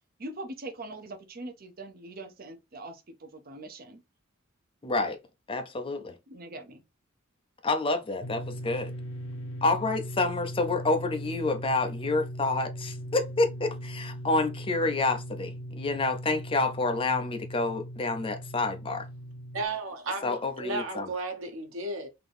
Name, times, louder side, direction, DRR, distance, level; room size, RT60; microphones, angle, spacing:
voice 1, 0.2-4.0 6.3-6.8, right 2 dB, 45° right, 0.7 m, -42 dB
voice 2, 4.8-5.2 5.5-6.1 7.6-8.9 9.6-19.1 20.2-21.1, left 3 dB, 25° left, 0.6 m, -28 dB
sound 1, 8.2-19.7, equal, 75° left, 0.7 m, -39 dB
voice 3, 19.5-22.1, right 2 dB, 80° right, 1.2 m, -34 dB
3.8 x 2.9 x 3.4 m
head